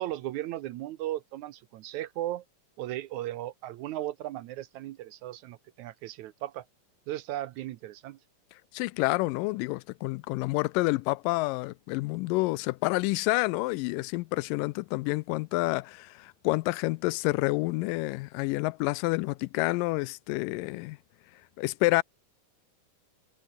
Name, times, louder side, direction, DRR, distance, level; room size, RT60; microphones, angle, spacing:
voice 1, 0.0-2.4 2.8-6.7 7.1-8.2, right 14 dB, 75° right, 1.9 m, -36 dB
voice 2, 8.7-21.0 21.6-22.0, left 22 dB, 85° left, 2.2 m, -28 dB
omnidirectional pair, 3.8 m